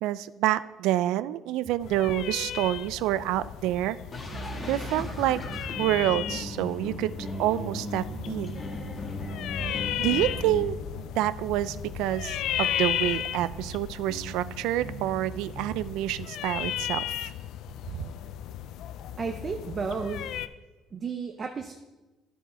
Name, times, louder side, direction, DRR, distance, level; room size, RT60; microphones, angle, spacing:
voice 1, 0.0-4.0 4.7-5.5 5.8-8.6 10.0-17.3 17.9-18.1, right 14 dB, 85° right, 16 dB, 0.3 m, -28 dB
sound 1, 1.8-20.5, left 11 dB, 55° left, 0.3 m, -35 dB
sound 2, 4.1-10.7, left 2 dB, 20° left, 1.3 m, -38 dB
sound 3, 4.3-16.1, right 3 dB, 65° right, 1.0 m, -42 dB
voice 2, 19.2-20.3 20.9-21.7, right 5 dB, 25° right, 5 dB, 0.5 m, -33 dB
12.5 x 5.5 x 4.2 m, 1.1 s
cardioid pair, 175°, 0 cm